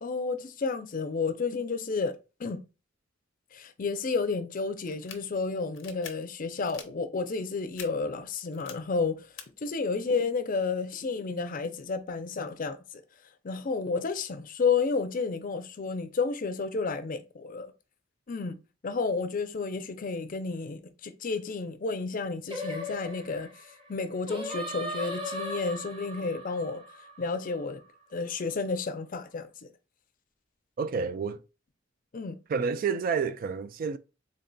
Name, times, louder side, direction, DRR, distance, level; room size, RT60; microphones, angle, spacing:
voice 1, 0.0-2.6 3.5-9.3 9.6-12.8 13.4-17.7 18.3-18.6 18.8-23.5 23.9-26.8 27.2-27.8 28.1-29.5 32.1-32.4, left 4 dB, 45° left, 0.5 m, -31 dB
sound 1, 4.9-5.2 5.7-6.1 6.6-6.9 7.8-7.9 8.5-8.7 9.4-9.5, left 9 dB, 85° left, 0.7 m, -43 dB
Singing, 22.5-27.8, equal, 25° right, 0.9 m, -38 dB
voice 2, 30.8-31.4 32.5-34.0, right 5 dB, 50° right, 0.3 m, -29 dB
3.9 x 3.6 x 2.2 m
head